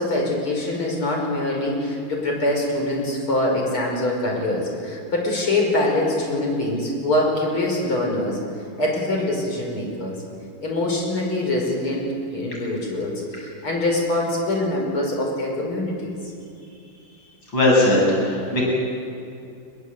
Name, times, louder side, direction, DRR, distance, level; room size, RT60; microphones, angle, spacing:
voice 1, 0.0-8.4 8.8-10.1 10.6-16.2, left 1 dB, 75° left, 0 dB, 6.7 m, -24 dB
voice 2, 17.5-18.6, left 1 dB, 60° left, -3 dB, 8.4 m, -18 dB
25.0 x 22.5 x 8.3 m, 2.5 s
omnidirectional pair, 2.4 m